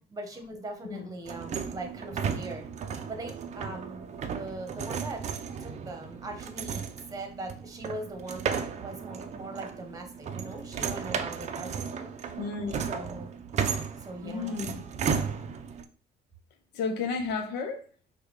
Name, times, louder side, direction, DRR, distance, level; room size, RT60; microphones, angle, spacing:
voice 1, 0.1-2.7 3.1-5.2 5.6-12.1 12.9-13.4 14.0-14.6, right 2 dB, 20° right, 0.9 m, -40 dB
sound 1, 1.2-15.8, right 6 dB, 40° right, 0.4 m, -35 dB
voice 2, 12.3-12.8 14.2-14.8 16.7-17.8, left 4 dB, 85° left, 0.6 m, -32 dB
4.9 x 2.3 x 3.1 m
cardioid pair, 110°, 17 cm